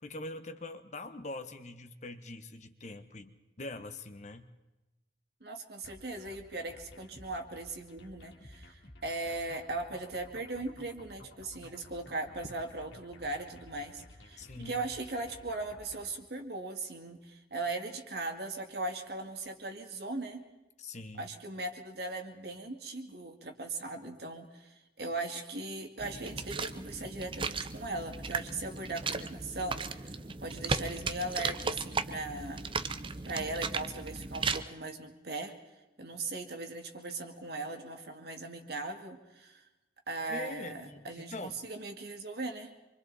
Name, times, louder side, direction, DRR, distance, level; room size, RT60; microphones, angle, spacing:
voice 1, 0.0-4.5 14.4-14.8 20.8-21.3 40.3-41.6, left 2 dB, 40° left, 9 dB, 1.1 m, -43 dB
voice 2, 5.4-20.4 21.2-30.1 30.4-32.7 33.2-35.5 36.0-39.6 40.1-42.7, right 2 dB, 60° right, 4 dB, 2.1 m, -39 dB
sound 1, 5.8-16.2, left 1 dB, 85° left, 2.6 m, -54 dB
sound 2, 26.0-34.6, right 4 dB, 30° right, 0.7 m, -36 dB
27.0 x 24.0 x 4.2 m, 1.0 s
head